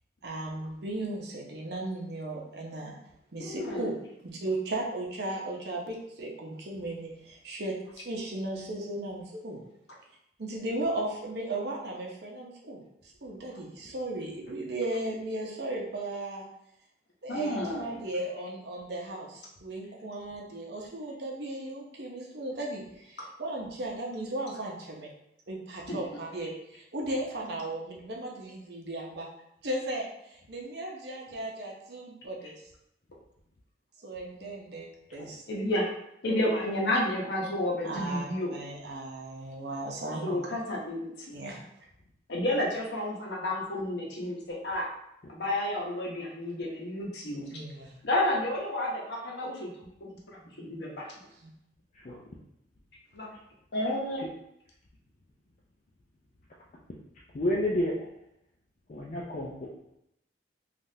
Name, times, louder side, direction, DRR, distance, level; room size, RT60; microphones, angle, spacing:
voice 1, 0.2-3.0 3.3-4.0 4.4-9.6 10.4-12.8 13.2-16.4 17.2-25.1 25.5-29.3 29.6-32.5 34.0-35.4 37.8-40.5 41.3-41.7 47.5-47.9 51.4-51.5, right 1 dB, 60° right, -1 dB, 0.7 m, -36 dB
voice 2, 3.4-3.9 17.3-18.0 25.9-26.0 35.2-35.9 36.2-38.7 40.2-41.3 42.3-44.9 45.3-47.5 48.0-49.7 50.3-51.1 53.1-53.3 53.7-54.3, left 1 dB, 65° left, -2 dB, 0.8 m, -31 dB
voice 3, 57.3-58.0 58.9-59.7, left 1 dB, 40° left, -4 dB, 0.4 m, -30 dB
3.4 x 2.4 x 2.7 m, 0.78 s
head